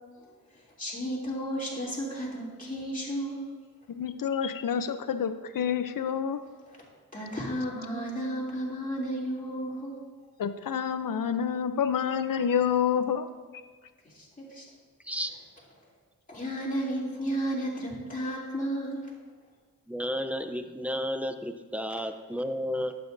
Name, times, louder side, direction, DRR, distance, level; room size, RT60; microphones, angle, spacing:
voice 1, 0.2-3.5 6.7-6.8 7.1-9.9 14.0-14.6 16.3-19.0, right 1 dB, 20° left, -5 dB, 2.9 m, -33 dB
voice 2, 3.9-6.4 10.4-13.3, left 8 dB, 65° left, 11 dB, 0.6 m, -28 dB
voice 3, 19.9-22.9, equal, 5° right, 8 dB, 0.6 m, -32 dB
12.0 x 8.7 x 2.6 m, 1.5 s
wide cardioid pair, 75°, 36 cm